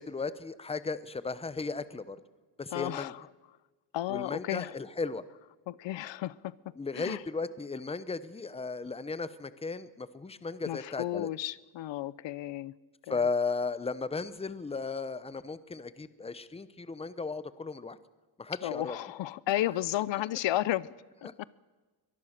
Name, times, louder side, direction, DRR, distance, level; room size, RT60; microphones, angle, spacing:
voice 1, 0.0-2.2 2.6-3.1 4.1-5.2 6.8-11.3 13.1-18.0 18.4-19.0 21.2-21.3, left 4 dB, 15° left, 15 dB, 0.9 m, -35 dB
voice 2, 2.7-3.2 3.9-4.8 5.7-7.2 10.7-12.7 13.1-13.2 18.6-20.9 21.2-21.4, left 14 dB, 85° left, 20 dB, 0.8 m, -33 dB
23.5 x 19.5 x 6.6 m, 1.3 s
wide cardioid pair, 150°, 44 cm